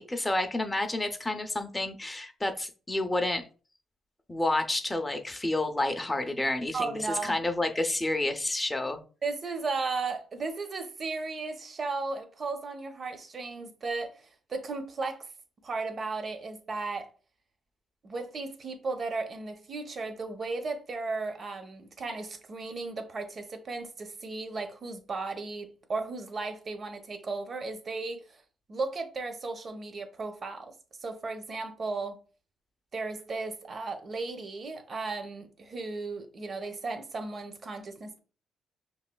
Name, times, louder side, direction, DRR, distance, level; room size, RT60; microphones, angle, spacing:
voice 1, 0.0-3.4 4.3-6.9 7.2-9.0, left 2 dB, 15° left, 0.5 m, -29 dB
voice 2, 6.7-7.4 9.2-15.3 15.6-17.1 18.0-28.4 28.7-30.7 31.0-32.2 32.9-38.2, right 3 dB, 45° right, 0.8 m, -35 dB
5.6 x 3.0 x 2.2 m
cardioid pair, 90°, 0 cm